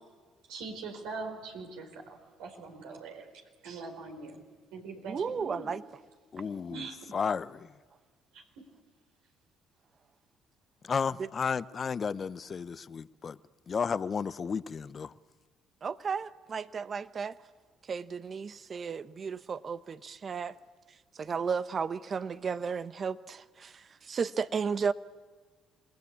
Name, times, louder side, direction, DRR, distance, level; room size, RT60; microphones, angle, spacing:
voice 1, 0.5-3.3 3.6-4.4 4.7-5.7 6.7-7.0 8.3-8.4, right 4 dB, 80° right, 4.6 m, -42 dB
voice 2, 5.0-5.8 15.8-17.4 17.9-20.5 21.1-24.9, right 6 dB, 45° right, 1.0 m, -34 dB
voice 3, 6.3-7.7 10.8-13.4 13.7-15.1, left 6 dB, 45° left, 0.8 m, -33 dB
27.5 x 19.5 x 8.5 m
hypercardioid pair, 55°, 0 cm